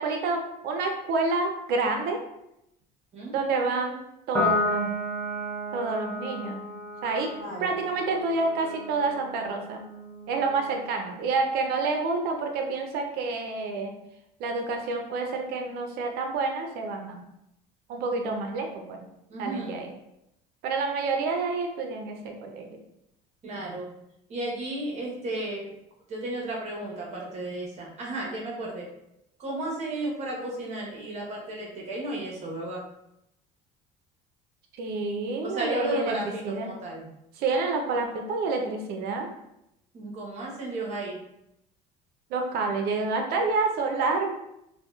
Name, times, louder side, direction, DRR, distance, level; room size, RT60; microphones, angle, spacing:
voice 1, 0.0-2.2 3.3-4.0 4.3-4.9 5.7-6.6 7.0-7.3 7.6-9.8 10.3-13.9 14.4-17.2 17.9-19.1 19.4-19.9 20.6-22.7 34.8-36.2 36.4-36.7 37.4-39.3 42.3-44.3, right 3 dB, 65° right, 3 dB, 0.5 m, -28 dB
Piano, 4.3-11.0, left 2 dB, 5° left, 0.6 m, -33 dB
voice 2, 7.4-7.7 19.3-19.8 23.4-23.9 24.3-25.7 26.1-28.9 29.4-32.8 35.4-37.1 39.9-41.2, right 2 dB, 40° right, -2 dB, 0.8 m, -33 dB
2.7 x 2.1 x 2.3 m, 0.82 s
cardioid pair, 115°, 18 cm